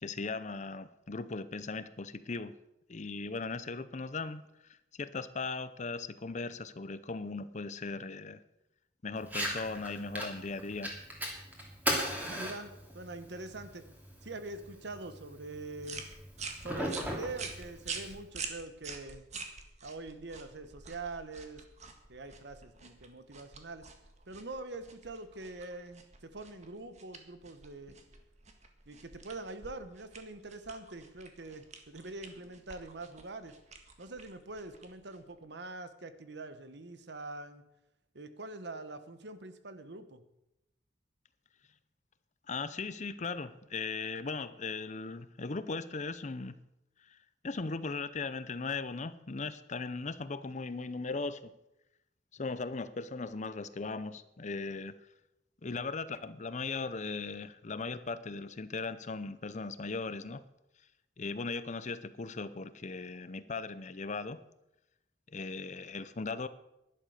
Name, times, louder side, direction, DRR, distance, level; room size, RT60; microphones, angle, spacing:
voice 1, 0.0-2.5 2.9-8.4 9.0-10.9 42.5-46.6 47.1-47.2 47.4-51.5 52.3-54.9 55.6-60.4 61.2-64.4 65.3-66.5, left 4 dB, 40° left, 14 dB, 0.7 m, -38 dB
Fire, 9.2-18.2, equal, 10° right, 2.9 m, -39 dB
voice 2, 12.2-13.8 14.2-16.0 16.6-19.3 19.8-21.6 22.1-23.9 24.3-28.0 28.9-33.6 34.0-37.6 38.1-40.2, right 2 dB, 65° right, 11 dB, 1.2 m, -44 dB
sound 1, 15.8-35.4, right 5 dB, 40° right, 1.7 m, -47 dB
11.5 x 11.5 x 6.6 m, 0.88 s
head